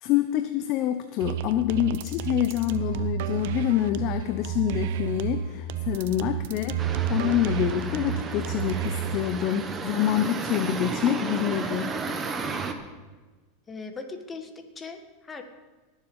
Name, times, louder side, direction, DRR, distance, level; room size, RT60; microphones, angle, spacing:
voice 1, 0.0-12.0, left 11 dB, 50° left, 9 dB, 0.7 m, -26 dB
sound 1, 1.2-9.2, right 9 dB, 70° right, 0.6 m, -31 dB
sound 2, 6.8-12.7, right 4 dB, 25° right, 1.2 m, -33 dB
voice 2, 13.7-15.4, left 4 dB, 20° left, 6 dB, 1.6 m, -39 dB
18.0 x 7.4 x 5.5 m, 1.3 s
supercardioid pair, 115°, 0 cm